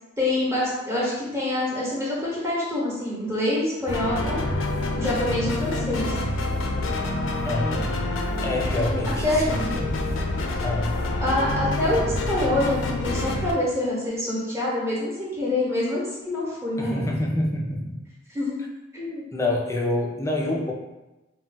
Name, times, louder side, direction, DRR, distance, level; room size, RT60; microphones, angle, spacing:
voice 1, 0.2-4.4 5.0-6.2 9.2-9.5 11.2-17.0 18.3-18.6 18.9-19.3, left 1 dB, 15° right, -7 dB, 0.9 m, -26 dB
sound 1, 3.9-13.5, left 2 dB, 90° left, 0.4 m, -27 dB
voice 2, 7.4-7.9 8.4-9.9 10.6-10.9 16.8-18.0 19.3-20.7, left 1 dB, 15° left, -1 dB, 0.4 m, -27 dB
2.2 x 2.2 x 3.9 m, 1.0 s
head